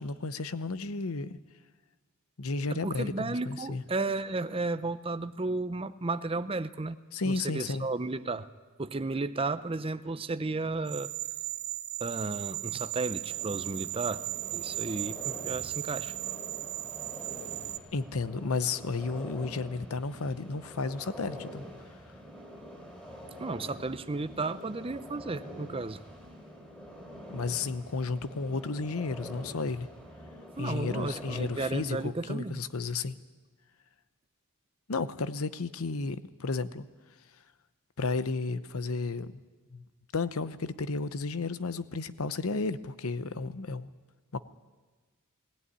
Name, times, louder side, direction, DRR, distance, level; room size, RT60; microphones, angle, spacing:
voice 1, 0.0-1.4 2.4-3.8 7.1-7.9 17.9-21.7 27.3-29.9 30.6-33.2 34.9-36.8 38.0-39.4 39.7-39.8 40.1-43.9, left 3 dB, 70° left, 13 dB, 0.8 m, -33 dB
voice 2, 2.7-7.0 7.2-8.5 8.8-11.1 12.0-16.1 23.4-26.0 30.6-32.6, right 3 dB, 25° right, 12 dB, 0.6 m, -33 dB
sound 1, 10.9-17.8, right 17 dB, 70° right, 0.9 m, -37 dB
sound 2, 13.1-32.0, equal, 5° left, 3.7 m, -46 dB
18.5 x 17.5 x 9.7 m, 1.3 s
head